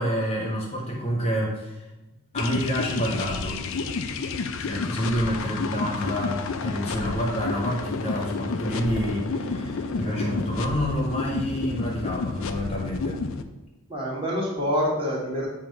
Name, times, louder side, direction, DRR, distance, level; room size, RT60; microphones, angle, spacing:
voice 1, 0.0-1.9 2.3-3.6 4.6-13.2, equal, 30° left, -1 dB, 0.9 m, -28 dB
sound 1, 2.3-13.4, left 4 dB, 65° left, 0.4 m, -30 dB
voice 2, 13.9-15.5, equal, 25° right, -4 dB, 1.5 m, -27 dB
7.9 x 2.8 x 5.2 m, 1.0 s
head